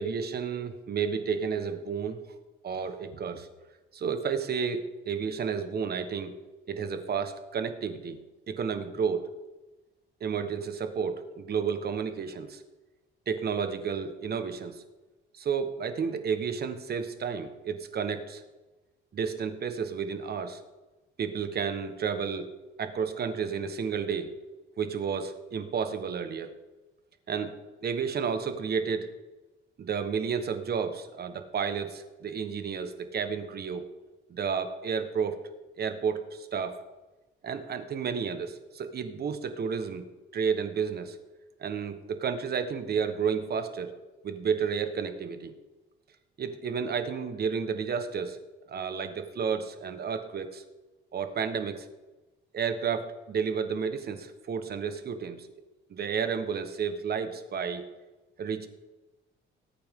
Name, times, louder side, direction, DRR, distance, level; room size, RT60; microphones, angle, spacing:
voice 1, 0.0-2.2 2.6-3.5 3.9-6.3 6.7-8.2 8.5-9.3 10.2-12.6 13.3-14.8 15.3-18.4 19.1-20.6 21.2-22.5 22.8-24.3 24.8-26.5 27.3-29.1 29.8-33.8 34.3-35.5 35.8-36.8 37.4-40.0 40.3-41.2 41.6-43.9 44.2-45.5 46.4-48.4 48.7-50.6 51.1-51.9 52.5-55.5 55.9-57.8 58.4-58.7, right 6 dB, 50° right, 8 dB, 1.4 m, -31 dB
19.5 x 8.8 x 3.8 m, 1.1 s
cardioid pair, 115°, 21 cm